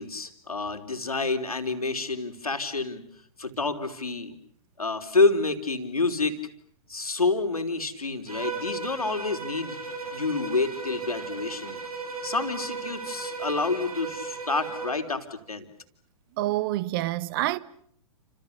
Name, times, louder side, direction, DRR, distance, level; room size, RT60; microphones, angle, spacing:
voice 1, 0.0-3.0 3.4-4.3 4.8-6.4 6.9-9.8 10.1-11.8 12.2-15.7, left 3 dB, 80° left, 3.5 m, -28 dB
Bowed string instrument, 8.3-15.0, right 4 dB, 80° right, 7.4 m, -36 dB
voice 2, 16.4-17.6, right 17 dB, 40° right, 1.3 m, -27 dB
30.0 x 27.0 x 6.8 m
figure-of-eight pair, 110°, 18 cm